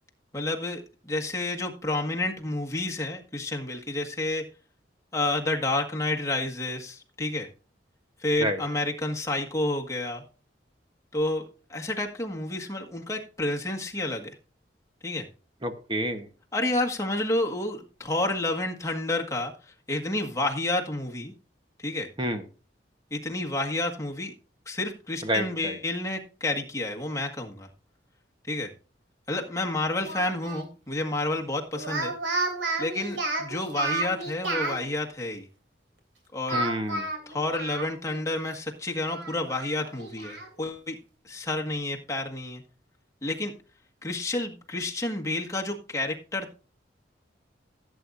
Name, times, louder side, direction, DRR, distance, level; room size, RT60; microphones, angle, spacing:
voice 1, 0.3-4.4 5.1-7.5 8.2-10.2 11.1-14.4 15.0-15.3 16.5-21.3 21.8-22.1 23.1-24.3 24.7-27.7 28.5-28.7 29.3-32.1 32.8-35.5 36.3-36.6 37.3-41.0 41.2-42.6 43.2-43.5 44.0-46.6, left 2 dB, 15° left, 0 dB, 1.6 m, -30 dB
voice 2, 15.6-16.3 22.2-22.4 25.2-25.8 36.5-37.1, right 1 dB, 25° right, 7 dB, 1.1 m, -29 dB
Speech, 30.1-30.7 31.7-34.8 36.5-38.2 38.5-38.6 39.1-40.5, right 2 dB, 90° right, 2.9 m, -31 dB
16.0 x 8.5 x 2.6 m, 0.35 s
head